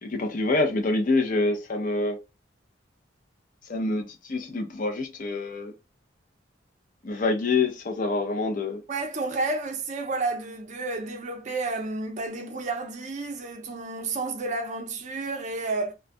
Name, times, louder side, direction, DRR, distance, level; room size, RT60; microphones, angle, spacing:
voice 1, 0.0-2.2 3.7-5.7 7.0-8.8, left 3 dB, 45° left, 0.5 m, -26 dB
voice 2, 8.9-15.9, right 3 dB, 40° right, 0.5 m, -31 dB
2.3 x 2.1 x 2.5 m
head